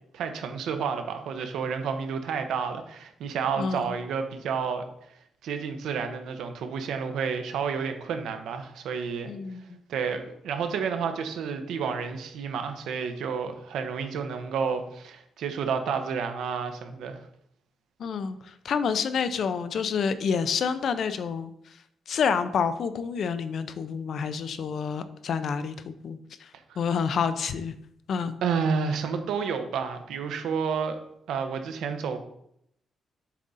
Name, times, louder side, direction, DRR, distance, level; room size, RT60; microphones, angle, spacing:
voice 1, 0.1-4.8 5.4-9.3 9.9-17.2 26.7-26.8 28.4-31.0 31.3-32.2, right 6 dB, 80° right, 7 dB, 0.8 m, -30 dB
voice 2, 3.6-3.9 9.2-9.8 18.0-21.5 22.1-26.5 26.8-27.7 28.1-28.3, left 6 dB, 50° left, 11 dB, 0.4 m, -28 dB
7.3 x 3.7 x 4.0 m, 0.73 s
cardioid pair, 160°, 0 cm